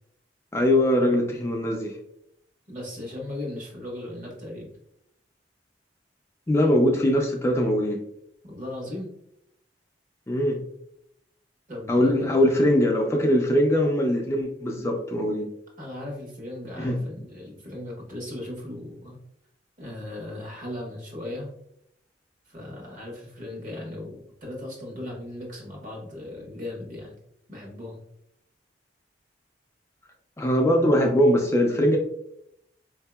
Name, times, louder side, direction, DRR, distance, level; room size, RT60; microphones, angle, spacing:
voice 1, 0.5-2.0 6.5-8.0 10.3-10.6 11.9-15.5 16.8-17.0 30.4-32.0, equal, 15° left, 0 dB, 0.3 m, -21 dB
voice 2, 2.7-4.7 8.4-9.1 11.7-12.6 15.8-19.2 19.8-21.5 22.5-27.1 27.5-28.0, left 1 dB, 45° right, -1 dB, 1.2 m, -37 dB
3.9 x 2.7 x 2.2 m, 0.75 s
head